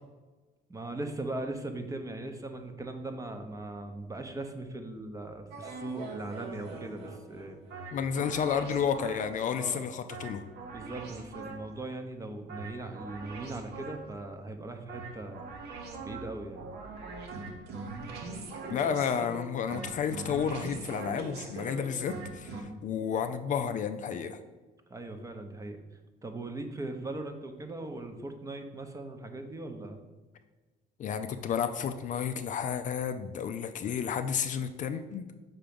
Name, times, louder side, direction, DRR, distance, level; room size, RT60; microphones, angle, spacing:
voice 1, 0.7-7.6 9.5-9.9 10.7-15.4 15.9-16.6 22.5-22.8 24.9-25.8 26.2-30.0, right 2 dB, 20° right, 6 dB, 0.7 m, -39 dB
sound 1, 5.5-9.4 10.1-11.8 12.5-14.2 14.9-22.6, right 3 dB, 75° right, 1.0 m, -42 dB
voice 2, 7.9-10.4 18.7-24.4 31.0-35.3, left 7 dB, 50° left, 9 dB, 0.4 m, -31 dB
5.8 x 3.7 x 5.2 m, 1.2 s
cardioid pair, 110°, 17 cm